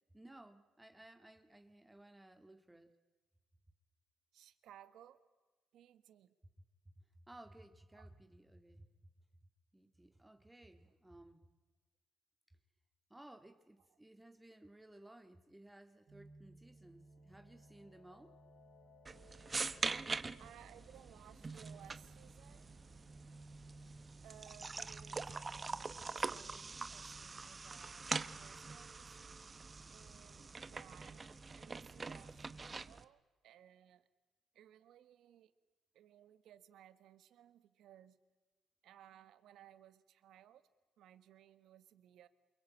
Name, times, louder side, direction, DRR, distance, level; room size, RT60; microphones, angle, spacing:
voice 1, 0.1-2.9 7.3-8.9 9.7-11.4 13.1-18.4, right 1 dB, 10° right, 7 dB, 2.1 m, -58 dB
voice 2, 4.3-5.2 5.7-6.3 7.9-8.1 13.9-14.0 20.4-22.7 24.2-29.2 29.9-34.1 34.5-35.5 35.9-38.2 38.8-40.7 41.0-42.3, right 11 dB, 80° right, 13 dB, 1.6 m, -61 dB
sound 1, 16.1-32.7, right 2 dB, 55° right, 3.9 m, -60 dB
sound 2, 16.7-26.2, left 7 dB, 85° left, 2.5 m, -70 dB
sound 3, 19.0-33.0, right 4 dB, 30° right, 1.1 m, -44 dB
28.5 x 23.5 x 8.6 m, 1.2 s
cardioid pair, 90°, 0 cm